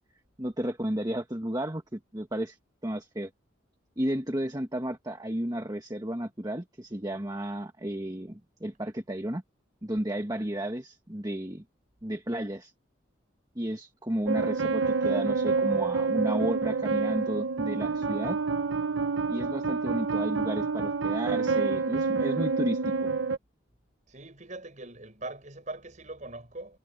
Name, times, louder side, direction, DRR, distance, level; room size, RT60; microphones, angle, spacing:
voice 1, 0.4-2.6 2.8-3.3 4.0-9.4 9.8-11.6 12.0-12.7 13.5-18.4 19.3-23.1, right 1 dB, 20° right, 1.5 m, -33 dB
sound 1, 14.3-23.4, right 4 dB, 80° right, 1.0 m, -28 dB
voice 2, 24.1-26.8, right 2 dB, 40° right, 6.8 m, -41 dB
head